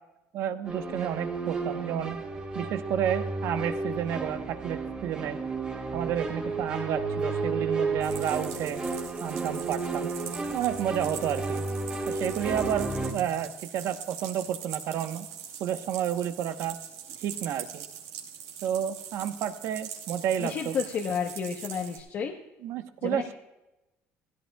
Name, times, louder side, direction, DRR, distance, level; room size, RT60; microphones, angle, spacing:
voice 1, 0.3-2.2 2.5-5.4 5.9-8.8 9.2-10.1 10.5-11.6 12.1-15.3 15.6-16.8 17.2-17.8 18.6-20.7 22.6-23.3, right 10 dB, 60° right, 9 dB, 1.0 m, -31 dB
sound 1, 0.6-13.1, right 3 dB, 20° right, 2.4 m, -32 dB
sound 2, 8.0-22.0, right 8 dB, 80° right, 3.4 m, -42 dB
voice 2, 20.4-22.3 23.0-23.3, left 6 dB, 45° left, 1 dB, 1.1 m, -31 dB
17.5 x 16.0 x 2.3 m, 0.98 s
cardioid pair, 145°, 5 cm